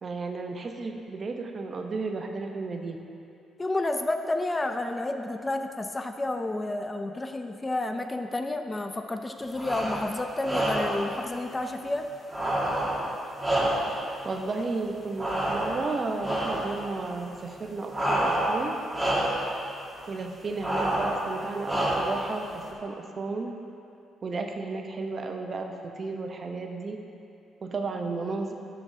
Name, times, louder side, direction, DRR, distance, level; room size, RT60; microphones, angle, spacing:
voice 1, 0.0-3.0 14.2-18.8 20.1-23.5 24.2-27.0 27.6-28.5, right 3 dB, 40° right, 4 dB, 0.7 m, -33 dB
voice 2, 3.6-12.1, left 2 dB, 20° left, 6 dB, 0.4 m, -30 dB
sound 1, 9.5-10.1 10.4-11.1 12.3-14.1 15.2-15.9 16.2-16.7 17.9-18.7 18.9-19.5 20.6-21.2 21.6-22.2, right 1 dB, 15° right, 1.8 m, -27 dB
12.5 x 5.9 x 2.7 m, 2.7 s
cardioid pair, 90°, 0 cm